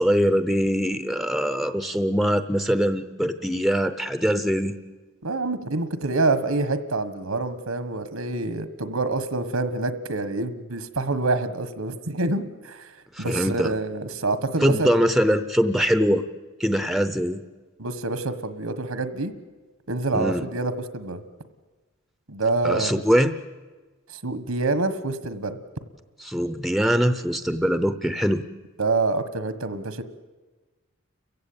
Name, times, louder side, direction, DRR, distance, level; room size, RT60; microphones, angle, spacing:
voice 1, 0.0-4.7 13.1-13.7 14.6-16.2 16.6-17.4 20.1-20.4 22.6-23.4 26.2-28.4, equal, ahead, 10 dB, 0.7 m, -22 dB
voice 2, 5.2-12.9 13.2-14.9 17.8-19.3 19.9-21.2 22.3-23.0 24.1-25.6 28.8-30.0, right 3 dB, 80° right, 11 dB, 1.5 m, -26 dB
29.5 x 15.5 x 8.7 m, 1.3 s
head